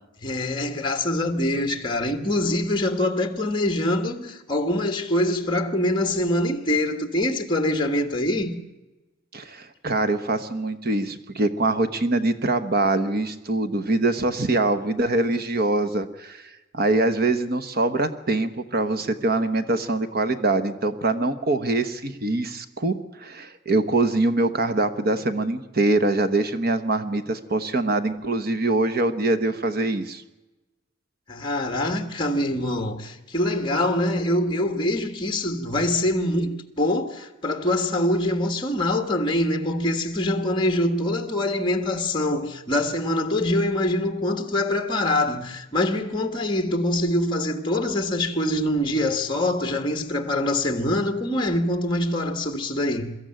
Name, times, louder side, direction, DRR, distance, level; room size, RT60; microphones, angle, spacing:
voice 1, 0.2-8.6 31.3-53.2, left 1 dB, 25° left, 1.5 m, -24 dB
voice 2, 9.3-16.4 16.7-30.2, right 2 dB, 50° right, 1.1 m, -24 dB
23.0 x 13.5 x 9.0 m
head